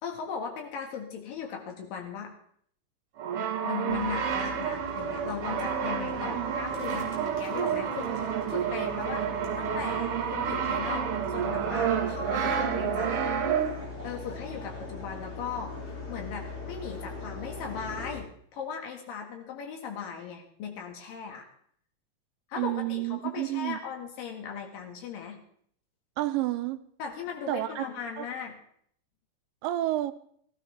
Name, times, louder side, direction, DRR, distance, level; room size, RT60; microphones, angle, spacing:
voice 1, 0.0-2.3 3.6-9.3 9.6-13.3 14.0-15.7 16.1-21.5 22.5-25.4 27.0-28.5, left 6 dB, 85° left, 2 dB, 3.5 m, -38 dB
Brass instrument, 3.2-14.0, right 8 dB, 65° right, 1.5 m, -30 dB
sound 1, 3.9-18.2, left 3 dB, 55° left, 4.4 m, -41 dB
voice 2, 7.0-7.3 22.6-23.8 26.2-26.8 27.5-27.8 28.2-28.3 29.6-30.1, right 16 dB, 85° right, 11 dB, 2.4 m, -30 dB
18.5 x 15.0 x 3.5 m, 0.64 s
omnidirectional pair, 3.9 m